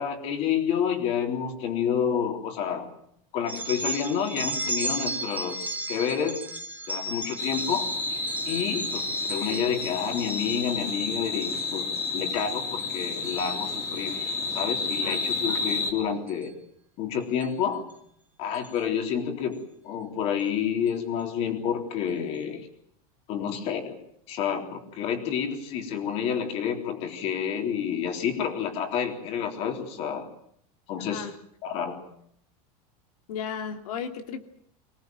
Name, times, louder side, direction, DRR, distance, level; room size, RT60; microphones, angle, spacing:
voice 1, 0.0-2.9 3.3-6.4 6.9-7.9 8.5-14.2 14.5-16.5 17.0-17.9 18.4-22.7 23.3-24.0 24.3-30.3 30.9-31.3 31.6-32.0, left 8 dB, 35° left, 5 dB, 3.7 m, -29 dB
sound 1, 3.5-10.8 11.3-11.6 12.0-12.4 12.8-14.1 15.1-15.3 16.3-16.4 17.4-17.5 17.9-18.0 18.5-18.8, right 2 dB, 10° right, 1.7 m, -35 dB
sound 2, 7.4-15.9, left 3 dB, 20° left, 3.6 m, -30 dB
voice 2, 31.0-31.3 33.3-34.4, left 7 dB, 85° left, 6 dB, 2.8 m, -35 dB
25.5 x 18.5 x 9.2 m, 0.69 s
supercardioid pair, 180°, 18 cm